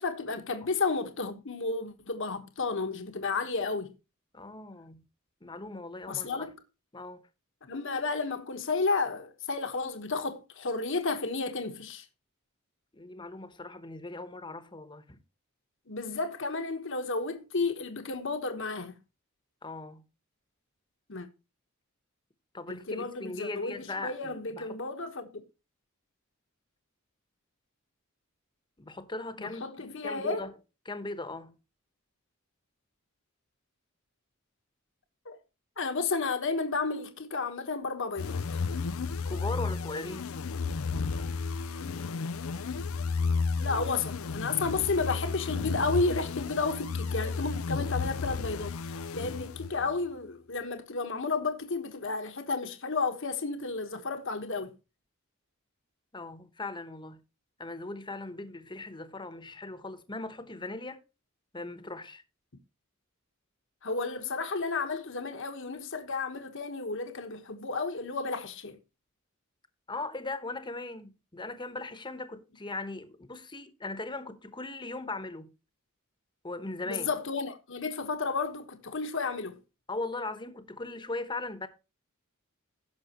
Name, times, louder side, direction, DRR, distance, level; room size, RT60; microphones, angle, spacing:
voice 1, 0.0-3.9 6.1-6.5 7.6-12.0 15.9-19.0 21.1-21.3 22.7-25.4 29.4-30.5 35.2-35.4 35.8-38.4 43.6-54.7 63.8-68.8 76.9-79.6, left 4 dB, 65° left, 1.3 m, -32 dB
voice 2, 4.3-5.0 5.4-6.5 6.9-7.2 12.9-15.2 19.6-20.1 22.5-24.8 28.8-29.6 30.0-30.5 30.8-31.5 39.2-40.3 56.1-57.2 57.6-61.0 61.5-62.2 69.9-75.5 76.4-77.1 79.9-81.7, left 2 dB, 20° left, 1.1 m, -39 dB
sound 1, 38.2-49.9, left 4 dB, 85° left, 0.6 m, -33 dB
16.5 x 6.3 x 3.0 m
head